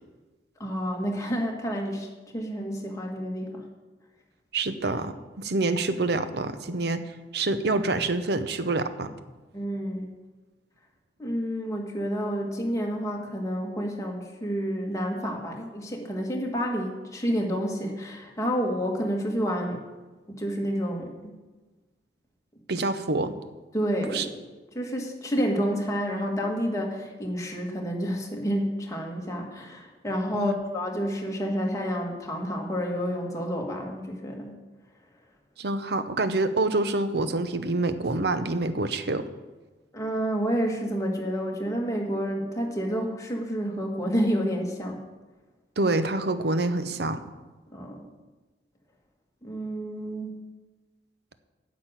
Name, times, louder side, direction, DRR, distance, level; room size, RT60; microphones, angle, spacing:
voice 1, 0.6-2.1 2.3-3.7 9.5-10.1 11.2-19.8 20.3-21.1 23.7-24.4 24.7-34.6 39.9-45.0 47.7-48.1 49.4-50.4, equal, 20° left, 0 dB, 1.7 m, -29 dB
voice 2, 4.5-7.0 7.3-9.1 22.7-23.3 24.1-24.3 30.3-30.6 35.6-39.2 45.8-47.2, right 2 dB, 65° right, 10 dB, 0.8 m, -26 dB
10.0 x 6.4 x 8.8 m, 1.2 s
head